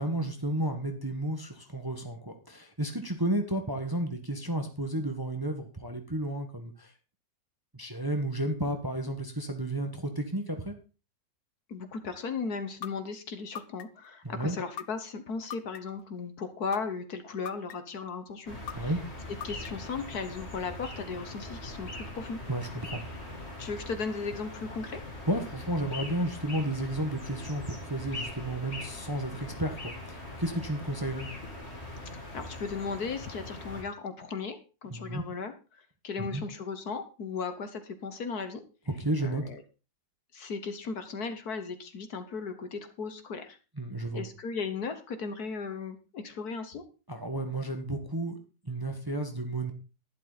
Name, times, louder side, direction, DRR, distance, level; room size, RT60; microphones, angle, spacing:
voice 1, 0.0-6.9 7.7-10.8 14.2-14.6 18.7-19.0 22.5-23.0 25.3-31.3 34.9-35.2 36.2-36.4 38.9-39.4 43.8-44.3 47.1-48.4 48.6-49.7, right 1 dB, 15° right, 5 dB, 1.3 m, -32 dB
voice 2, 11.7-18.9 19.4-22.4 23.6-25.0 32.0-38.6 39.2-39.6 40.3-43.6 44.1-46.8, left 5 dB, 60° left, 9 dB, 1.7 m, -36 dB
sound 1, 12.8-12.9 13.5-14.1 14.8-14.9 15.5-16.0 16.7-16.8 17.5-18.0 18.7-18.8 19.4-19.9, left 9 dB, 75° left, 1.4 m, -38 dB
sound 2, 18.5-33.8, left 2 dB, 35° left, 3.2 m, -42 dB
11.5 x 11.5 x 4.1 m, 0.33 s
omnidirectional pair, 2.0 m